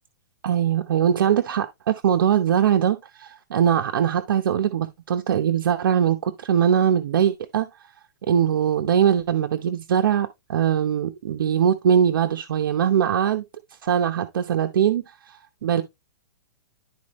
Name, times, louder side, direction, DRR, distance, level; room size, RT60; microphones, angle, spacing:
voice 1, 0.4-7.7 8.3-13.4 13.8-15.8, right 9 dB, 70° right, 0.9 m, -21 dB
11.5 x 4.4 x 3.1 m
hypercardioid pair, 160°, 12 cm